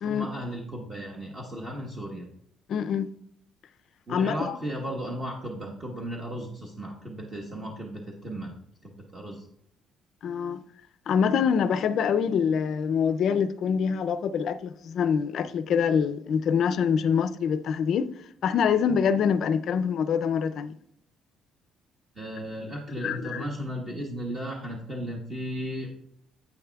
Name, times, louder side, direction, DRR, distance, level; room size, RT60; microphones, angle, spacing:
voice 1, 0.0-2.3 4.1-8.5 8.8-9.5 22.1-25.9, equal, 20° right, 1.1 m, -35 dB
voice 2, 2.7-3.1 4.1-4.6 10.2-10.6 11.1-18.1 18.4-20.7 23.0-23.5, left 7 dB, 50° left, 0.4 m, -25 dB
10.0 x 8.2 x 2.3 m
cardioid pair, 170°, 0 cm